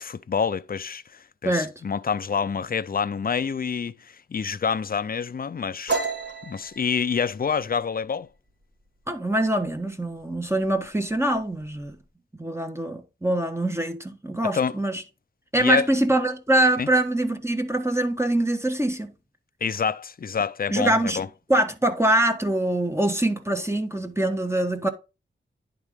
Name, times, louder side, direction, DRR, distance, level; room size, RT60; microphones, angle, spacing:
voice 1, 0.0-6.0 6.5-8.3 14.4-14.8 15.6-15.9 16.8-16.9 19.6-21.3, left 6 dB, 45° left, 0.5 m, -27 dB
sound 1, 5.9-9.3 9.6-10.0 10.3-10.9 11.1-11.9, right 4 dB, 60° right, 2.6 m, -32 dB
voice 2, 9.1-12.0 12.4-15.0 15.5-19.1 20.7-21.2 21.5-24.9, right 1 dB, 15° right, 1.2 m, -24 dB
10.5 x 3.8 x 3.6 m
cardioid pair, 55°, 20 cm